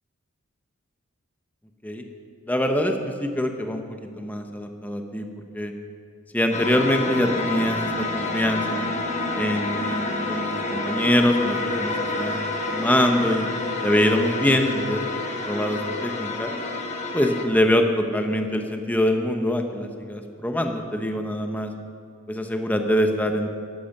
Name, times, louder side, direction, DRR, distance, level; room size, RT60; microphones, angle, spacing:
voice 1, 2.5-3.8 4.2-5.3 5.5-5.7 6.3-8.9 9.3-10.4 10.7-13.5 13.8-15.0 15.5-16.5 17.1-21.7 22.3-23.5, left 1 dB, 10° left, 4 dB, 0.9 m, -24 dB
sound 1, 6.5-17.5, left 2 dB, 30° left, 1.4 m, -28 dB
14.5 x 12.0 x 6.0 m, 2.3 s
head